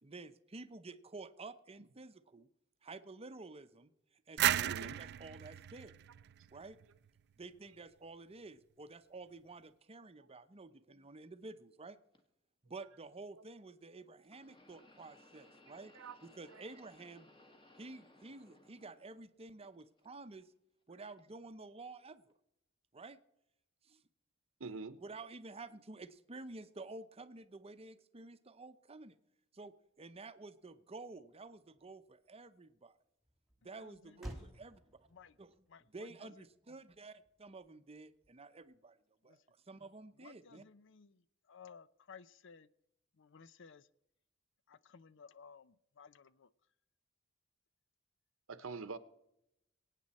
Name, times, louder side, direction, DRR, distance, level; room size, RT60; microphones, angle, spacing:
voice 1, 0.0-2.5 2.8-3.9 4.3-5.9 6.5-6.8 7.4-12.0 12.6-17.3 17.8-20.5 20.9-22.3 22.9-23.2 23.8-24.0 25.0-29.2 29.5-32.9 33.6-34.8 35.4-35.5 35.9-39.0 39.2-40.6, right 3 dB, 30° right, 0.7 m, -51 dB
sound 1, 4.4-7.1, right 12 dB, 55° right, 0.4 m, -35 dB
voice 2, 4.4-5.0 15.7-16.1 16.5-16.7 24.6-25.0 48.5-49.0, right 4 dB, 70° right, 0.9 m, -45 dB
sound 2, 12.1-12.2 14.2-19.3 19.6-20.4 21.2-21.3 22.3-22.4, left 2 dB, 25° left, 1.6 m, -63 dB
Motor vehicle (road), 30.3-38.8, equal, ahead, 1.8 m, -56 dB
voice 3, 33.6-34.5 35.1-35.4 35.7-36.3 39.2-39.4 40.2-42.7 43.2-43.9 44.7-46.5, left 6 dB, 65° left, 0.5 m, -58 dB
23.5 x 9.1 x 4.2 m
head